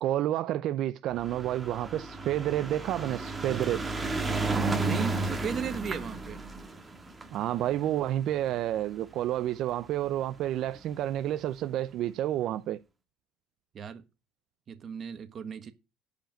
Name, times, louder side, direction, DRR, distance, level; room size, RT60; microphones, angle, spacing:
voice 1, 0.0-3.8 7.3-12.8, right 12 dB, 60° right, 0.5 m, -30 dB
sound 1, 1.1-9.6 10.5-10.6 10.8-10.9 11.1-11.2, right 3 dB, 15° right, 1.6 m, -33 dB
voice 2, 4.8-6.4 13.7-14.0 14.7-15.7, right 7 dB, 40° right, 1.3 m, -36 dB
10.0 x 5.2 x 7.7 m
cardioid pair, 130°, 0 cm